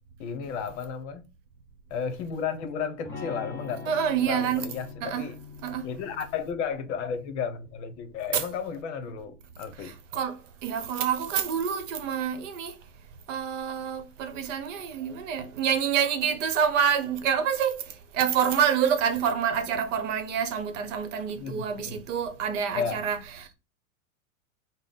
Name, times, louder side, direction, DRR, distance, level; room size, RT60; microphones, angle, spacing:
voice 1, 0.2-1.3 1.9-3.9 4.3-5.4 5.8-9.9 21.4-22.0 22.7-23.0, left 6 dB, 55° left, 0.8 m, -33 dB
Electric guitar / Strum, 3.0-8.8, left 4 dB, 5° left, 1.2 m, -44 dB
voice 2, 3.9-4.7 5.0-5.3 5.6-5.9 8.3-8.4 9.8-12.8 13.3-23.5, right 8 dB, 60° right, 0.9 m, -27 dB
3.5 x 2.1 x 3.9 m
hypercardioid pair, 110°, 43 cm